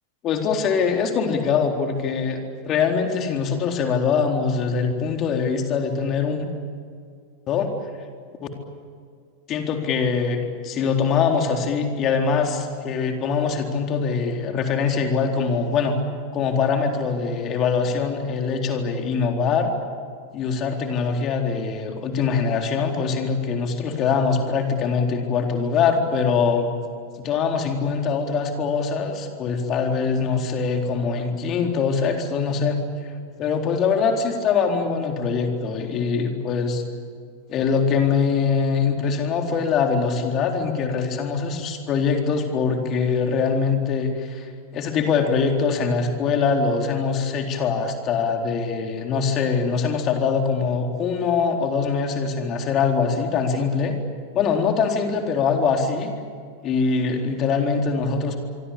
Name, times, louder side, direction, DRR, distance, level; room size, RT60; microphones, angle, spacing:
voice 1, 0.2-2.4 2.6-6.5 7.5-7.7 8.4-8.5 9.5-16.0 16.3-19.7 20.3-26.7 27.2-32.8 33.4-36.8 37.5-54.0 54.3-56.1 56.6-58.4, left 5 dB, 35° left, 3 dB, 4.0 m, -23 dB
26.0 x 24.0 x 8.7 m, 2.2 s
figure-of-eight pair, 90°, 0 cm